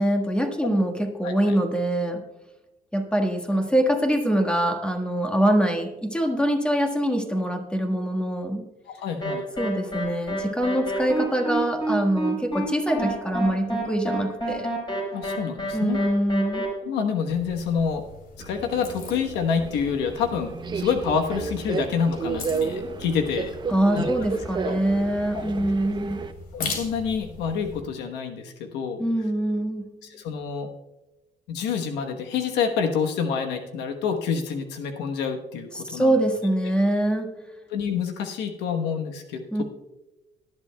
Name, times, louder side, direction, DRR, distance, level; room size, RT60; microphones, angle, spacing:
voice 1, 0.0-2.2 2.9-8.6 9.6-14.7 15.7-16.7 23.7-26.3 29.0-29.9 35.7-37.3 39.5-39.6, right 1 dB, 5° left, 3 dB, 1.5 m, -24 dB
voice 2, 9.0-9.4 15.1-16.0 16.8-18.0 18.4-23.5 23.9-24.1 24.6-24.8 26.5-29.0 30.0-30.7 31.5-36.2 37.7-39.6, left 6 dB, 85° left, 4 dB, 1.1 m, -27 dB
sound 1, 9.2-16.7, right 1 dB, 30° left, 4.7 m, -29 dB
sound 2, 17.3-27.8, left 3 dB, 60° left, 2.8 m, -40 dB
Subway metro underground, 18.4-26.3, right 5 dB, 25° right, 0.7 m, -32 dB
19.0 x 11.0 x 2.3 m, 1.0 s
cardioid pair, 110°, 17 cm